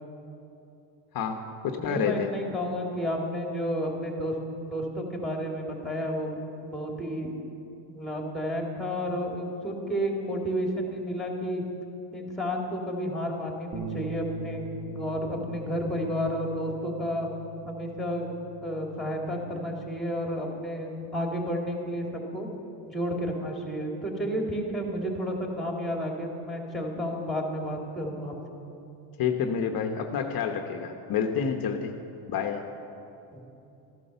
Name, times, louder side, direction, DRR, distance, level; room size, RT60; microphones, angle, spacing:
voice 1, 1.1-2.3 29.2-31.9 32.3-32.6, left 7 dB, 50° left, 4 dB, 1.1 m, -28 dB
voice 2, 1.8-7.3 7.9-11.6 12.1-17.3 17.6-18.3 18.6-22.5 22.8-28.3 33.3-33.4, equal, ahead, 0 dB, 2.8 m, -31 dB
sound 1, 13.7-20.0, right 3 dB, 45° right, 1.3 m, -41 dB
14.0 x 11.0 x 6.9 m, 2.9 s
cardioid pair, 100°, 44 cm